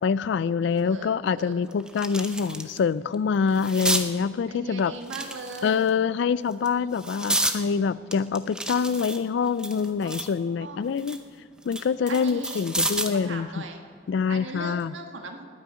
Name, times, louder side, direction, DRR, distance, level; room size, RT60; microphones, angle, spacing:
voice 1, 0.0-4.9 5.6-11.2 11.6-13.6 14.1-14.9, left 6 dB, 60° left, 18 dB, 0.3 m, -25 dB
sound 1, 0.8-0.9 1.4-2.8 3.1-4.1 5.0-5.9 6.5-7.6 8.1-10.4 10.8-13.2 14.6-14.8, right 1 dB, 5° right, 0.7 m, -30 dB
voice 2, 0.8-1.6 4.5-5.9 6.6-6.9 10.0-10.1 10.6-10.8 12.1-13.8 14.3-15.5, right 3 dB, 75° right, 4 dB, 1.5 m, -39 dB
20.0 x 9.2 x 5.0 m, 2.2 s
head